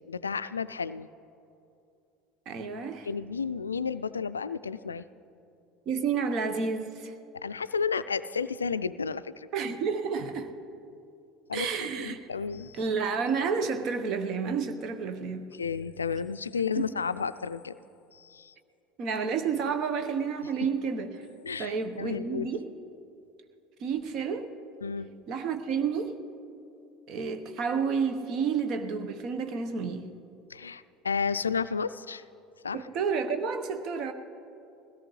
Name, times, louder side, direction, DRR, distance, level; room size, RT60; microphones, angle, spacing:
voice 1, 0.1-1.1 3.1-5.1 7.3-9.5 11.5-11.7 11.9-12.8 15.6-17.8 18.1-18.5 21.4-22.6 24.8-25.1 30.5-32.2 32.6-32.8, left 5 dB, 85° left, 0.3 m, -32 dB
voice 2, 2.5-3.1 5.9-7.1 9.5-10.5 11.5-12.3 12.8-15.5 16.8-16.9 19.0-21.3 21.6-22.7 23.8-24.5 25.3-26.2 27.1-30.1 32.7-34.1, right 5 dB, 50° right, 1.0 m, -30 dB
21.0 x 17.0 x 3.2 m
figure-of-eight pair, 70°, 0 cm